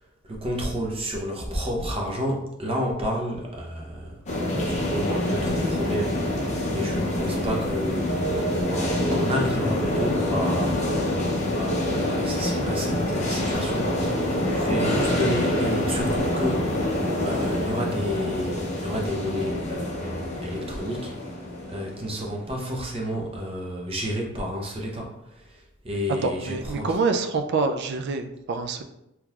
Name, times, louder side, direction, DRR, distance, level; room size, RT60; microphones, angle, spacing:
voice 1, 0.2-4.2 4.4-16.8 17.2-21.1 21.7-27.0, equal, 30° right, 0 dB, 0.7 m, -31 dB
sound 1, 4.3-22.4, left 1 dB, 35° left, 0.6 m, -26 dB
voice 2, 26.2-28.8, right 4 dB, 60° right, 6 dB, 0.3 m, -26 dB
3.7 x 2.9 x 2.4 m, 0.84 s
head